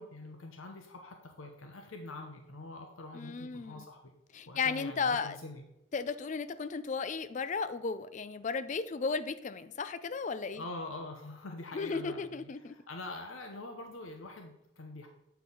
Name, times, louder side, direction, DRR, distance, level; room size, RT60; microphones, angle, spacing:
voice 1, 0.0-4.1 4.5-5.6 10.6-15.1, left 2 dB, 80° left, 3 dB, 0.9 m, -45 dB
voice 2, 3.1-3.8 4.3-5.4 5.9-10.6 11.7-12.8, left 5 dB, 35° left, 13 dB, 0.4 m, -34 dB
8.0 x 4.6 x 5.4 m, 0.87 s
head